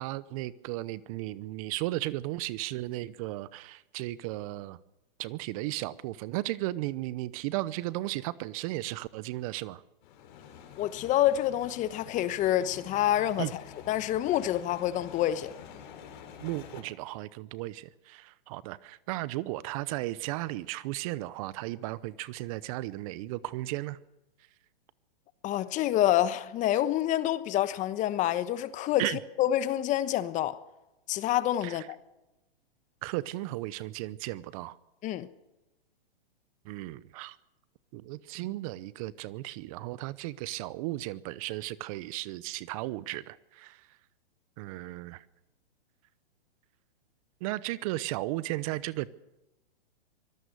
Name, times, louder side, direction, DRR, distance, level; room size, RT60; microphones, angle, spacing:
voice 1, 0.0-4.8 5.2-9.8 13.4-13.5 16.4-24.0 29.0-29.2 31.6-31.9 33.0-34.8 36.6-37.4 37.9-44.0 44.6-45.2 47.4-49.1, right 17 dB, 35° right, 0.8 m, -35 dB
sound 1, 10.0-16.8, left 8 dB, 55° left, 4.7 m, -48 dB
voice 2, 10.8-13.6 13.9-15.5 25.4-29.0 29.4-30.6 31.1-31.8 35.0-35.3, left 12 dB, 25° left, 1.1 m, -27 dB
24.5 x 18.5 x 6.8 m
hypercardioid pair, 130°, 30 cm